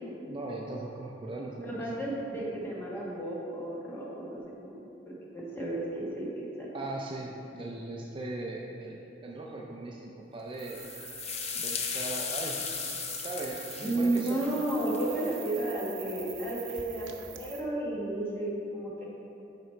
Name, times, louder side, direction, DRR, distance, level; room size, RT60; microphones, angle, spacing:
voice 1, 0.2-1.9 6.7-10.9 11.5-12.6 13.1-14.4, right 2 dB, 30° right, -1 dB, 0.4 m, -39 dB
voice 2, 1.6-4.8 5.1-6.7 13.8-19.0, right 1 dB, 15° left, -5 dB, 1.2 m, -33 dB
sound 1, 10.6-15.5, left 6 dB, 35° left, 0.5 m, -37 dB
sound 2, 10.6-17.6, right 10 dB, 90° right, 0.6 m, -45 dB
6.6 x 4.9 x 4.3 m, 2.8 s
head